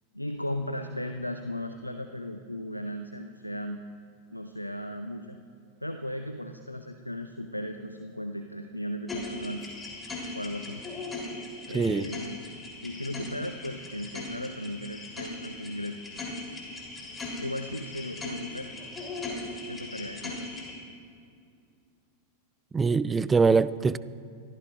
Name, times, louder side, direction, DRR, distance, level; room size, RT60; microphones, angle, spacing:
voice 1, 0.1-3.8 4.3-5.4 5.8-9.7 10.3-10.8 11.7-12.5 12.8-16.0 17.4-18.7 19.7-20.5, left 1 dB, 85° left, 7 dB, 0.6 m, -36 dB
sound 1, 9.1-20.7, left 2 dB, 15° left, 3.4 m, -39 dB
voice 2, 11.7-12.1 22.7-24.0, right 4 dB, 15° right, 18 dB, 0.4 m, -23 dB
25.0 x 14.5 x 2.5 m, 2.4 s
figure-of-eight pair, 90°, 0 cm